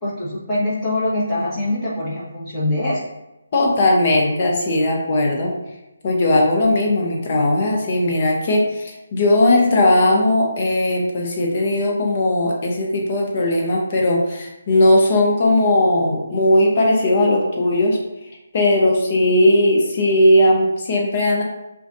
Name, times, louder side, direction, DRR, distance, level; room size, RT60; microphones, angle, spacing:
voice 1, 0.0-3.0, left 1 dB, 10° left, -10 dB, 1.3 m, -23 dB
voice 2, 3.5-5.5 6.0-18.0 18.5-21.4, left 1 dB, 35° left, 0 dB, 0.8 m, -18 dB
6.1 x 2.4 x 2.6 m, 0.93 s
figure-of-eight pair, 160°, 0 cm